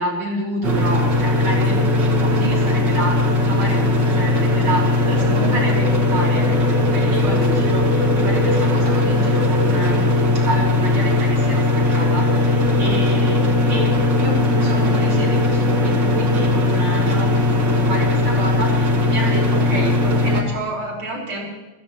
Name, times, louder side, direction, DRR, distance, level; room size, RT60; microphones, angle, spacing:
voice 1, 0.0-1.8 2.1-13.4 13.7-21.5, right 1 dB, 80° right, -3 dB, 6.2 m, -29 dB
sound 1, 0.6-20.4, left 2 dB, 60° right, 3.0 m, -18 dB
27.5 x 15.5 x 3.2 m, 1.2 s
omnidirectional pair, 2.3 m